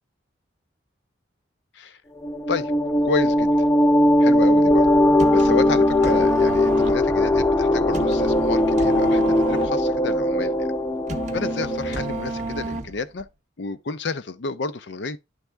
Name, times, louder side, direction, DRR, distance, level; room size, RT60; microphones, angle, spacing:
sound 1, 2.2-12.5, left 1 dB, 15° left, 0.5 m, -20 dB
voice 1, 3.0-3.5 4.2-4.9 5.3-10.7 11.3-13.3 13.6-15.2, left 4 dB, 60° left, 0.5 m, -30 dB
sound 2, 5.0-13.2, right 2 dB, 35° right, 0.6 m, -31 dB
10.5 x 3.5 x 3.3 m
head